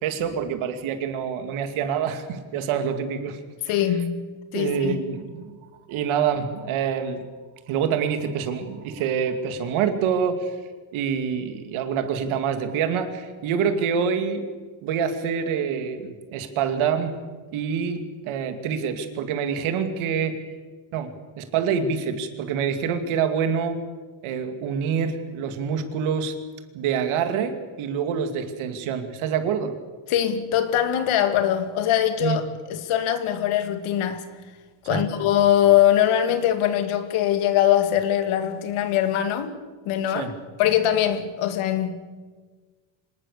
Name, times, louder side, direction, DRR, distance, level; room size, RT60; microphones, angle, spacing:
voice 1, 0.0-3.4 3.7-3.8 4.5-5.5 5.9-7.2 7.7-10.6 10.9-14.4 14.8-17.2 17.5-20.4 20.9-23.8 24.2-26.3 26.7-29.7 32.2-32.4 34.9-35.1 40.1-40.3, right 7 dB, 75° right, 2.7 m, -26 dB
voice 2, 3.7-5.0 30.1-32.4 32.7-34.2 34.9-39.5 39.9-40.3 40.6-42.1, left 11 dB, 80° left, 2.5 m, -22 dB
25.5 x 19.5 x 6.9 m
cardioid pair, 165°, 49 cm